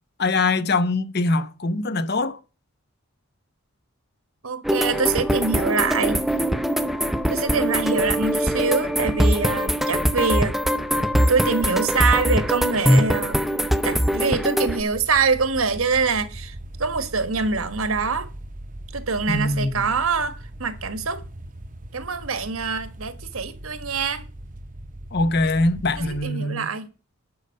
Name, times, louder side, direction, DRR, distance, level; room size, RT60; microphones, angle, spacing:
voice 1, 0.2-2.4 19.3-19.9 25.1-26.7, left 2 dB, 50° left, 0.9 m, -23 dB
voice 2, 4.4-6.2 7.3-10.6 11.3-13.4 13.8-18.3 18.9-21.2 21.9-24.3 26.0-26.9, right 4 dB, 85° right, 1.5 m, -24 dB
sound 1, 4.6-14.8, equal, ahead, 0.6 m, -22 dB
sound 2, 14.9-26.3, right 1 dB, 40° right, 0.8 m, -39 dB
11.5 x 5.5 x 6.5 m
head